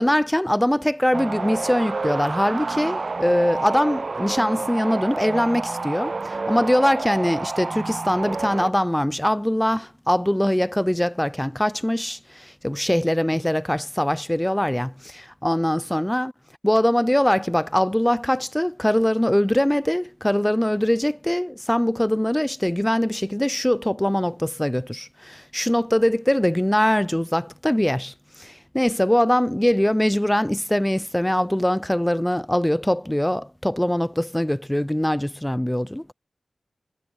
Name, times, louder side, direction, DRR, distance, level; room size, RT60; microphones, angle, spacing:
voice 1, 0.0-16.3 16.6-36.0, equal, 10° left, 0.6 m, -22 dB
sound 1, 1.1-8.7, right 3 dB, 55° right, 0.6 m, -29 dB
cardioid pair, 55°, 0 cm